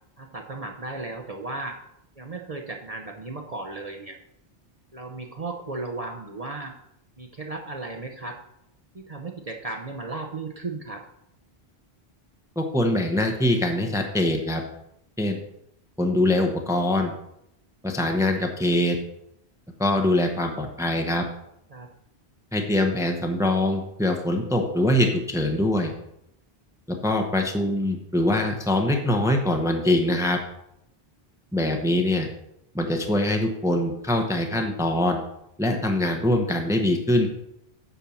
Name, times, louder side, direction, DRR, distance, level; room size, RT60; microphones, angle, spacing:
voice 1, 0.2-1.8 2.2-4.2 4.9-6.8 7.2-8.4 8.9-11.0 21.7-21.9, right 3 dB, 40° right, 1 dB, 0.9 m, -35 dB
voice 2, 12.6-14.6 15.2-15.4 16.0-17.1 17.8-19.0 19.8-21.2 22.5-25.9 26.9-30.4 31.5-32.3 32.7-35.2 35.6-37.3, left 1 dB, 5° right, 3 dB, 0.9 m, -23 dB
9.9 x 4.5 x 7.1 m, 0.78 s
omnidirectional pair, 1.0 m